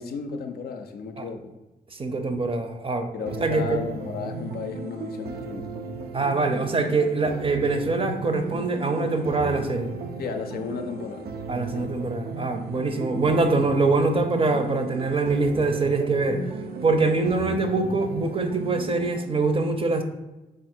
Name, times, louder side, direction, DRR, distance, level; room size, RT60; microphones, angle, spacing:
voice 1, 0.0-1.5 3.1-5.8 10.2-11.4 11.7-11.9, left 5 dB, 85° left, 6 dB, 0.4 m, -34 dB
voice 2, 1.9-3.1 3.4-3.8 6.1-9.9 11.5-16.4 16.8-20.0, right 3 dB, 35° right, 7 dB, 0.5 m, -24 dB
sound 1, 3.3-19.3, right 4 dB, 85° right, 0.4 m, -35 dB
3.7 x 2.5 x 4.3 m, 1.0 s
cardioid pair, 55°, 16 cm